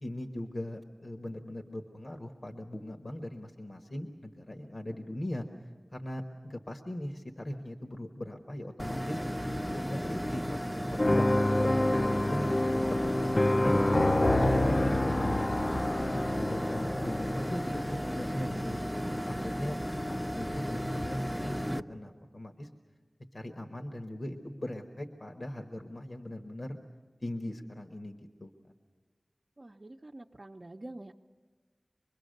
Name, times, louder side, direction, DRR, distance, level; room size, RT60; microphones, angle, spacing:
voice 1, 0.0-5.5 5.9-9.2 9.6-10.6 10.9-13.8 14.2-15.5 16.1-18.8 19.4-19.8 20.1-22.7 23.3-26.8 27.2-28.5, left 1 dB, 60° left, 4 dB, 1.3 m, -39 dB
sound 1, 8.8-21.8, equal, 5° left, 0.6 m, -34 dB
sound 2, 11.0-18.1, left 1 dB, 45° left, 0.6 m, -27 dB
voice 2, 29.6-31.1, right 1 dB, 50° right, -1 dB, 0.7 m, -46 dB
25.5 x 22.0 x 6.6 m, 1.4 s
wide cardioid pair, 45°, 0 cm